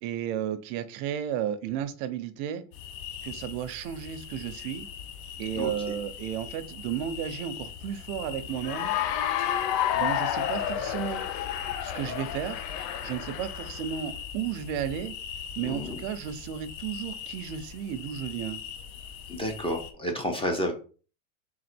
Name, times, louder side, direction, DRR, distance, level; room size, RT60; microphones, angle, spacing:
voice 1, 0.0-2.6 3.2-4.9 5.4-8.9 9.9-11.3 11.8-12.6 13.0-15.2 15.6-18.6, right 9 dB, 65° right, 0.7 m, -33 dB
sound 1, 2.7-19.9, left 8 dB, 55° left, 0.8 m, -41 dB
voice 2, 5.6-6.0 15.6-16.0 19.3-20.7, equal, 10° left, 0.5 m, -31 dB
Cheering / Applause, 8.6-13.8, left 10 dB, 90° left, 0.7 m, -30 dB
3.8 x 2.5 x 4.3 m
supercardioid pair, 130°, 48 cm